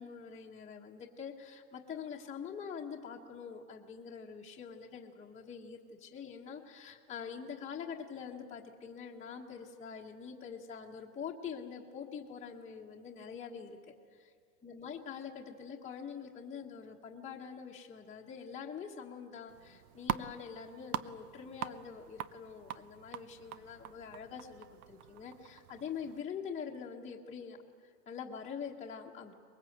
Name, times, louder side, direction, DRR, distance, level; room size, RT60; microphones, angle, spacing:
voice 1, 0.0-13.8 14.1-14.3 14.6-29.3, left 6 dB, 15° left, -2 dB, 1.3 m, -45 dB
sound 1, 19.5-26.2, right 12 dB, 65° right, 0.9 m, -43 dB
23.5 x 21.0 x 8.0 m, 2.1 s
supercardioid pair, 145°, 47 cm